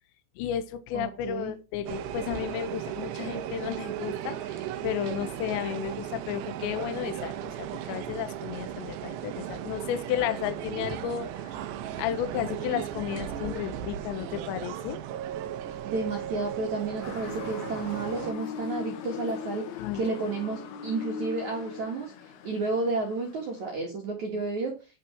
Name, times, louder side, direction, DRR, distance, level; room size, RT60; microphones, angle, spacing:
voice 1, 0.4-11.6 12.0-15.0 19.8-20.0, left 10 dB, 90° left, 10 dB, 2.6 m, -33 dB
voice 2, 0.9-1.5 15.9-19.6 19.9-22.1 22.4-24.8, right 3 dB, 60° right, 0 dB, 2.0 m, -31 dB
sound 1, 1.9-18.3, right 10 dB, 80° right, 2.6 m, -36 dB
Motor vehicle (road) / Siren, 17.0-23.8, left 8 dB, 70° left, 2.5 m, -40 dB
11.5 x 4.6 x 6.0 m, 0.32 s
omnidirectional pair, 5.9 m